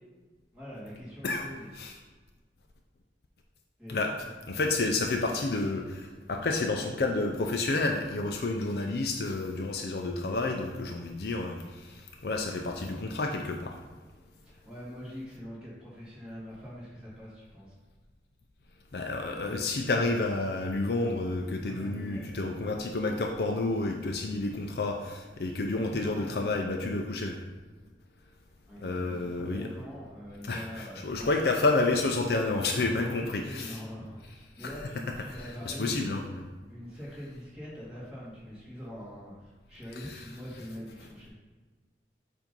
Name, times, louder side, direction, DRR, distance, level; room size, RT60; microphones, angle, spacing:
voice 1, 0.5-1.7 3.8-4.0 14.4-17.7 21.6-22.3 25.7-26.8 28.7-31.3 32.7-36.2 36.7-41.3, equal, 5° right, -9 dB, 1.7 m, -43 dB
voice 2, 4.5-13.8 18.9-27.4 28.8-29.7 30.4-33.8 35.7-36.4 40.0-40.2, left 2 dB, 60° left, 2 dB, 0.5 m, -30 dB
7.3 x 2.6 x 5.2 m, 1.3 s
head